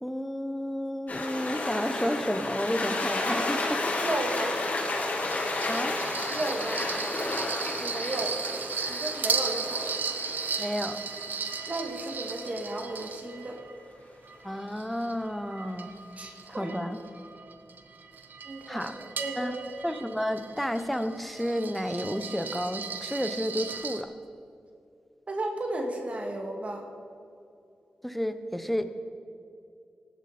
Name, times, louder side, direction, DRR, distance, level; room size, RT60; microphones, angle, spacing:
voice 1, 0.0-3.8 4.3-4.5 5.7-6.0 10.6-11.0 14.4-16.0 16.6-17.0 18.7-18.9 19.4-19.5 19.8-24.1 28.0-28.9, equal, 5° left, 9 dB, 1.1 m, -31 dB
sound 1, 1.1-12.5, left 2 dB, 55° left, 3.5 m, -32 dB
voice 2, 4.0-4.6 6.3-6.9 7.8-8.4 8.9-10.0 11.7-13.6 16.2-16.7 18.4-19.5 25.3-26.9, right 1 dB, 45° right, 2 dB, 2.2 m, -34 dB
sound 2, 5.2-13.7 14.3-24.0, right 5 dB, 70° right, 0.9 m, -36 dB
17.0 x 12.0 x 4.4 m, 2.5 s
cardioid pair, 45°, 3 cm